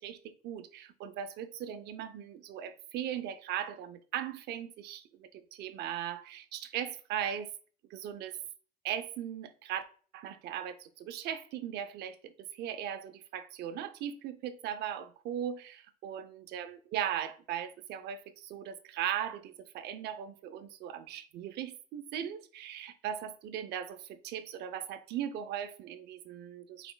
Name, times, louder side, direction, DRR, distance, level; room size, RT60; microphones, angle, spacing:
voice 1, 0.0-7.5 7.9-8.4 8.8-9.9 10.1-26.9, right 10 dB, 75° right, 0.6 m, -38 dB
4.9 x 4.2 x 2.2 m
cardioid pair, 110°, 17 cm